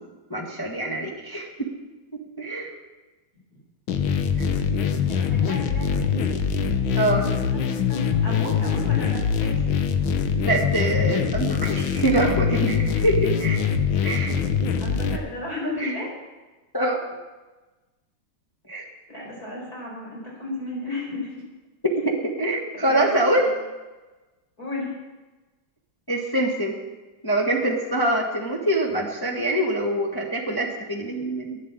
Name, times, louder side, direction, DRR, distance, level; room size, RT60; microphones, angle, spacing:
voice 1, 0.3-1.7 2.4-2.7 4.4-4.5 6.9-7.3 10.4-13.7 14.0-14.4 15.8-16.0 16.7-17.0 18.7-18.8 22.0-23.5 26.1-26.8 27.2-31.6, right 1 dB, 15° left, -1 dB, 1.2 m, -24 dB
sound 1, 3.9-15.2, left 7 dB, 75° left, 1.6 m, -23 dB
voice 2, 5.1-6.3 7.2-9.7 14.8-16.1 19.1-21.4 22.9-23.5 24.6-24.9, left 2 dB, 45° left, -3 dB, 5.5 m, -34 dB
12.0 x 9.5 x 7.5 m, 1.2 s
omnidirectional pair, 2.2 m